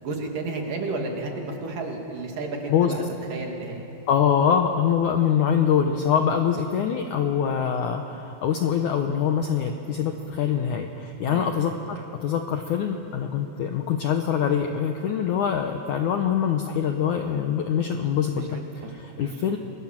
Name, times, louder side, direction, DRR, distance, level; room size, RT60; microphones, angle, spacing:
voice 1, 0.0-3.0 3.3-3.8 11.3-11.6 18.3-19.3, right 3 dB, 55° right, 1 dB, 3.8 m, -32 dB
voice 2, 4.1-19.6, left 8 dB, 90° left, 5 dB, 1.7 m, -24 dB
28.0 x 22.5 x 7.5 m, 3.0 s
omnidirectional pair, 5.0 m